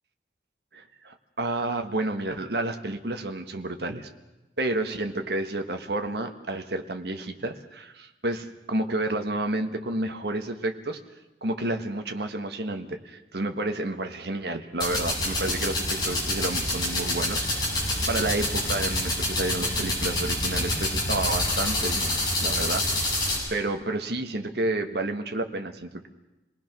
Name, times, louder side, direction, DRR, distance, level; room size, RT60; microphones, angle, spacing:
voice 1, 0.7-4.1 4.6-11.0 11.4-26.1, right 2 dB, 65° right, 5 dB, 1.6 m, -30 dB
sound 1, 14.8-23.4, left 1 dB, 25° left, 7.7 m, -27 dB
27.5 x 19.5 x 6.2 m, 1.0 s
head